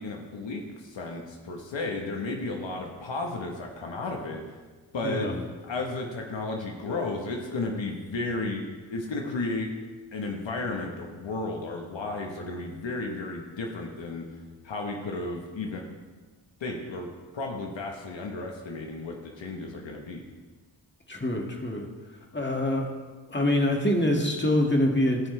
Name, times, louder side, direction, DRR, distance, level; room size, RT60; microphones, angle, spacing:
voice 1, 0.0-4.4 4.9-5.3 5.6-9.7 10.1-14.3 14.6-15.9 16.6-20.2, left 2 dB, 75° left, 1 dB, 1.3 m, -33 dB
voice 2, 5.0-5.4 21.1-21.9 22.3-22.9 23.3-25.3, left 1 dB, 25° left, 1 dB, 2.0 m, -25 dB
17.5 x 6.0 x 3.3 m, 1.3 s
cardioid pair, 40°, 45 cm